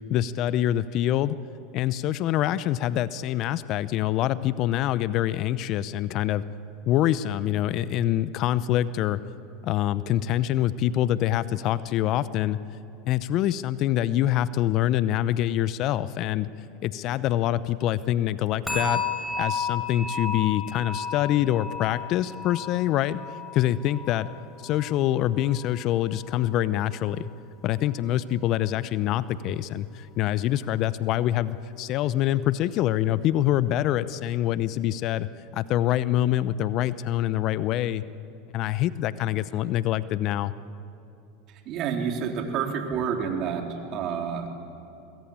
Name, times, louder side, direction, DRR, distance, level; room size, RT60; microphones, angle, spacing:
voice 1, 0.1-1.4 1.7-6.4 6.9-9.2 9.6-12.6 13.0-16.5 16.8-19.0 19.4-23.2 23.5-24.3 24.6-27.3 27.6-35.3 35.5-38.0 38.5-40.5, left 13 dB, 50° left, 16 dB, 0.7 m, -25 dB
sound 1, 18.7-25.7 26.0-26.4 26.9-27.0, left 4 dB, 15° left, 7.3 m, -33 dB
voice 2, 41.7-43.6 43.9-44.5, right 7 dB, 50° right, 2 dB, 3.9 m, -28 dB
25.0 x 21.0 x 8.8 m, 2.7 s
hypercardioid pair, 90°, 0 cm